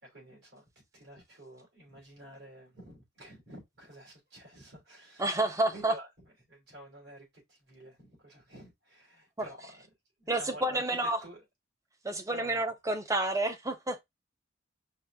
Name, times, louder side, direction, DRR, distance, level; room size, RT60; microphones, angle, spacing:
voice 1, 0.0-6.1 6.5-9.9 10.2-11.4 12.3-12.7, equal, 60° right, 3.1 m, -50 dB
voice 2, 5.2-5.9 10.3-11.2 12.0-14.0, right 2 dB, 15° right, 0.6 m, -29 dB
5.2 x 2.6 x 3.4 m
head